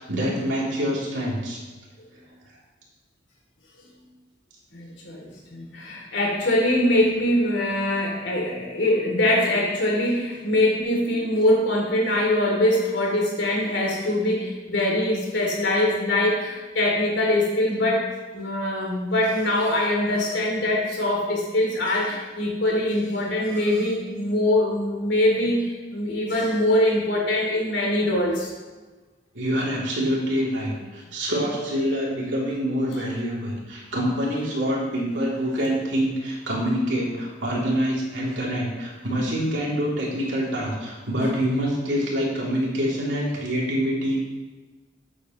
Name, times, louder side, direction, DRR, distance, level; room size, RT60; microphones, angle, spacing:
voice 1, 0.0-1.6 10.5-10.6 29.3-44.2, equal, 85° right, -5 dB, 3.3 m, -26 dB
voice 2, 4.7-18.1 18.3-28.5, left 1 dB, 70° left, -2 dB, 3.0 m, -23 dB
12.5 x 8.6 x 3.2 m, 1.2 s
head